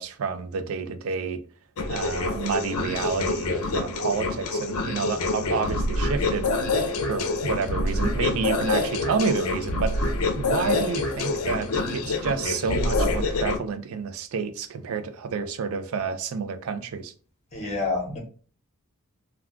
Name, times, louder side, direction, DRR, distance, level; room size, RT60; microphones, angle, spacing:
voice 1, 0.0-1.4 1.9-6.5 7.0-10.1 10.3-17.1, right 5 dB, 65° right, 0.4 m, -29 dB
sound 1, 1.8-13.6, left 2 dB, 75° left, 0.5 m, -26 dB
voice 2, 17.5-18.2, left 3 dB, 30° left, 0.8 m, -28 dB
2.3 x 2.3 x 3.5 m
head